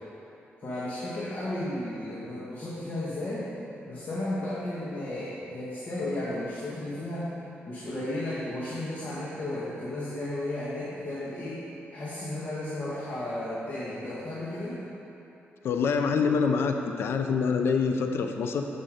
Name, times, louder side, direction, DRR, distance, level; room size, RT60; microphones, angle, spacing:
voice 1, 0.6-3.5 3.9-7.3 7.7-11.6 11.9-14.8, left 1 dB, 40° left, -7 dB, 1.4 m, -34 dB
voice 2, 15.6-18.7, left 5 dB, 70° left, 5 dB, 0.5 m, -26 dB
7.5 x 6.6 x 4.9 m, 3.0 s
cardioid pair, 110°, 4 cm